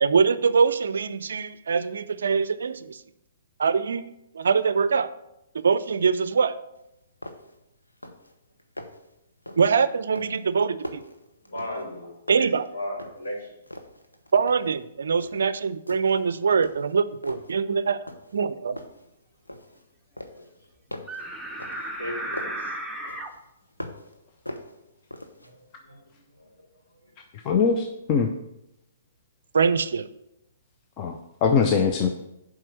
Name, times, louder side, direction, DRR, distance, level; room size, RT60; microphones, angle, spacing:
voice 1, 0.0-3.0 3.6-4.1 4.3-5.1 5.6-6.5 9.6-11.0 12.3-12.7 14.3-18.0 18.3-18.8 29.5-30.1, right 5 dB, 65° right, 0.4 m, -23 dB
sound 1, 6.8-6.9 7.2-7.6 7.9-8.3 8.6-9.1 9.5-9.8 10.1-12.0 12.3-13.3 13.7-14.8 15.2-15.5 15.9-16.3 16.6-17.6 18.1-18.5 18.8-19.8 20.2-22.7 23.1-24.1 24.5-25.5, left 1 dB, 85° left, 0.9 m, -41 dB
voice 2, 11.4-12.5 12.7-13.5 15.1-15.3 20.3-20.5 22.0-22.7 25.4-25.6 25.9-26.0 26.4-26.5, left 1 dB, 65° left, 3.5 m, -36 dB
sound 2, 21.1-23.3, right 1 dB, ahead, 0.9 m, -34 dB
voice 3, 27.3-28.3 31.0-32.1, left 6 dB, 30° left, 0.6 m, -22 dB
7.5 x 4.8 x 6.4 m
figure-of-eight pair, 120°, 0 cm